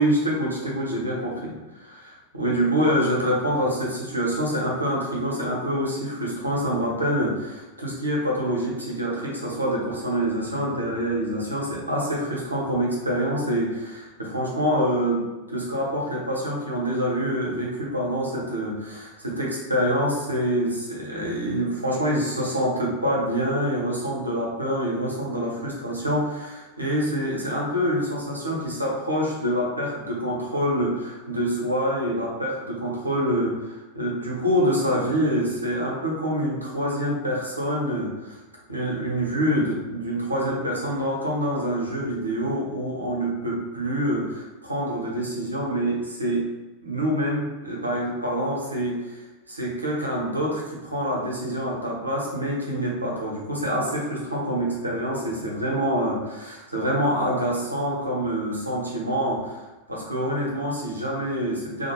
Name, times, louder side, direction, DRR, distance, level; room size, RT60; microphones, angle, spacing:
voice 1, 0.0-38.3 38.7-46.5 46.8-49.2 49.5-59.6 59.9-61.9, equal, 85° right, -4 dB, 0.7 m, -26 dB
2.4 x 2.1 x 3.0 m, 1.1 s
figure-of-eight pair, 90°, 0 cm